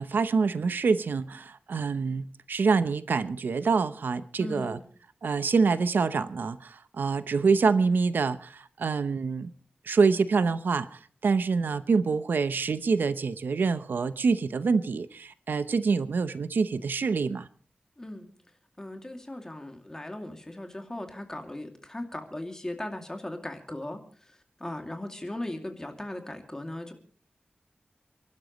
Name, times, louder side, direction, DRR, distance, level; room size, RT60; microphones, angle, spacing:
voice 1, 0.0-4.8 5.2-9.5 9.8-17.5, right 4 dB, 85° right, 0.8 m, -26 dB
voice 2, 4.4-4.8 18.0-18.3 18.8-26.9, left 1 dB, 15° left, 2.4 m, -38 dB
29.5 x 12.0 x 3.1 m
wide cardioid pair, 120°, 3 cm